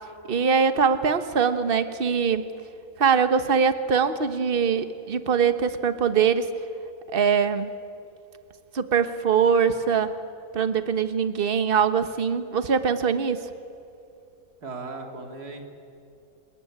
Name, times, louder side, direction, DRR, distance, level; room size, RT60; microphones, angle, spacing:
voice 1, 0.3-2.4 3.0-6.5 7.1-7.7 8.7-10.1 10.5-13.4, right 6 dB, 40° right, 10 dB, 1.2 m, -22 dB
voice 2, 14.6-15.6, right 3 dB, 85° right, 3 dB, 3.0 m, -37 dB
28.0 x 18.5 x 9.7 m, 2.6 s
omnidirectional pair, 1.6 m